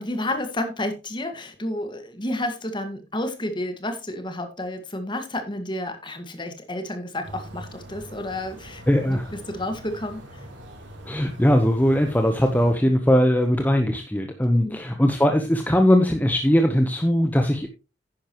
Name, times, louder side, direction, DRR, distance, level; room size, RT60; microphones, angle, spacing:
voice 1, 0.0-9.2 9.5-10.2 14.5-14.8, left 1 dB, 25° left, 7 dB, 1.8 m, -31 dB
sound 1, 7.2-12.7, equal, 90° right, 3.8 m, -42 dB
voice 2, 8.9-9.3 11.0-17.7, equal, 10° left, 5 dB, 0.9 m, -20 dB
10.5 x 10.0 x 3.0 m, 0.29 s
head